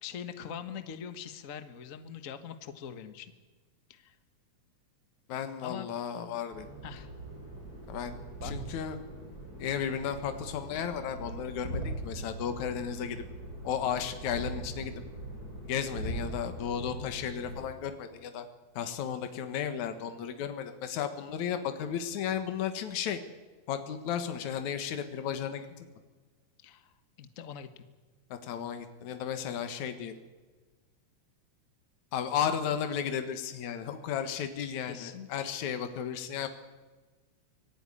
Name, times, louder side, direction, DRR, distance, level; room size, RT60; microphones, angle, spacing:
voice 1, 0.0-3.3 3.9-4.1 5.6-5.9 6.8-7.1 8.4-8.5 26.6-27.8 34.9-35.3, left 8 dB, 50° left, 9 dB, 0.9 m, -43 dB
voice 2, 5.3-6.7 7.9-8.2 8.4-9.0 9.6-13.2 13.6-14.9 15.6-18.4 18.8-23.2 23.7-25.9 28.3-30.2 32.1-36.5, left 8 dB, 70° left, 8 dB, 2.8 m, -34 dB
sound 1, 6.5-17.7, right 1 dB, 25° right, 6.5 m, -41 dB
25.0 x 17.5 x 9.9 m, 1.3 s
omnidirectional pair, 3.6 m